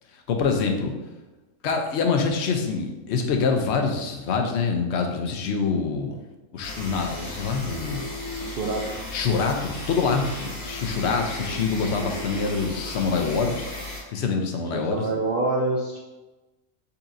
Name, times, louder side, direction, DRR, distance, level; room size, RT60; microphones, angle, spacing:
voice 1, 0.3-0.9 1.6-6.2 6.5-8.1 9.1-13.7 14.1-15.1, left 5 dB, 60° left, 4 dB, 0.8 m, -25 dB
sound 1, 6.6-14.0, left 1 dB, 85° left, 2.0 m, -35 dB
voice 2, 8.4-8.9 14.7-16.0, right 2 dB, 80° right, -1 dB, 0.5 m, -26 dB
6.8 x 2.8 x 2.6 m, 1.1 s
omnidirectional pair, 1.6 m